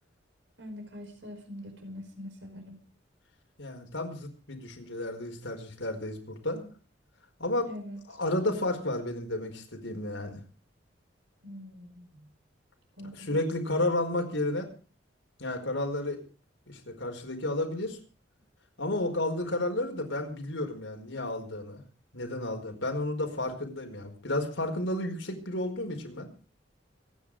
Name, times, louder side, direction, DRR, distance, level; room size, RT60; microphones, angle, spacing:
voice 1, 0.6-2.8 7.7-8.0 11.4-12.3 13.0-13.4, left 1 dB, 70° right, 5 dB, 4.9 m, -43 dB
voice 2, 3.6-6.7 7.4-7.7 8.1-10.4 13.1-14.7 15.4-16.2 16.7-18.0 18.8-21.8 22.1-26.3, left 1 dB, 85° left, 3 dB, 4.9 m, -32 dB
26.5 x 10.0 x 5.0 m, 0.37 s
head